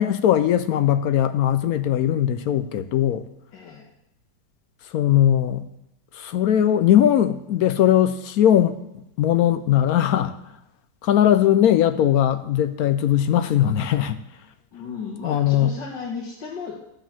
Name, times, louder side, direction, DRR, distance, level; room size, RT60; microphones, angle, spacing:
voice 1, 0.0-3.2 4.8-5.7 6.1-10.4 11.0-14.2 15.2-15.7, left 11 dB, 70° left, 11 dB, 0.9 m, -19 dB
voice 2, 3.5-3.9 14.7-16.8, left 5 dB, 85° left, -3 dB, 2.0 m, -34 dB
13.0 x 5.2 x 7.4 m, 0.86 s
omnidirectional pair, 1.9 m